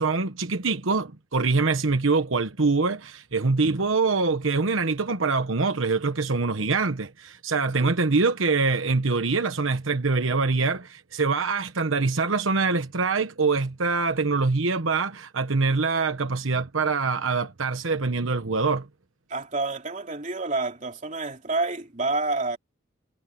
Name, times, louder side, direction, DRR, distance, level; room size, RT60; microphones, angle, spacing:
voice 1, 0.0-18.9, right 4 dB, 85° right, 1.1 m, -24 dB
voice 2, 19.3-22.6, right 3 dB, 40° right, 3.1 m, -28 dB
head